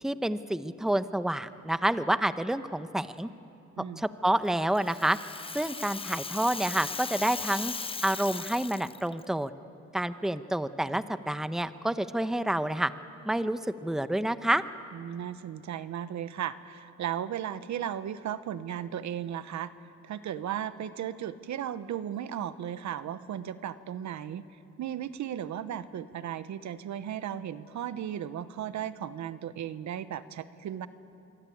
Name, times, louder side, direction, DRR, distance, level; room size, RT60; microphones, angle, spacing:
voice 1, 0.0-3.3 4.0-5.2 5.5-7.7 8.0-9.5 9.9-12.9 13.2-14.6, right 1 dB, ahead, 11 dB, 0.9 m, -28 dB
Rattle (instrument), 4.5-9.2, left 4 dB, 20° left, 0.6 m, -37 dB
voice 2, 14.9-19.7 20.0-24.4 24.8-30.9, right 10 dB, 70° right, 13 dB, 1.1 m, -35 dB
26.0 x 23.0 x 8.6 m, 2.7 s
cardioid pair, 90°, 30 cm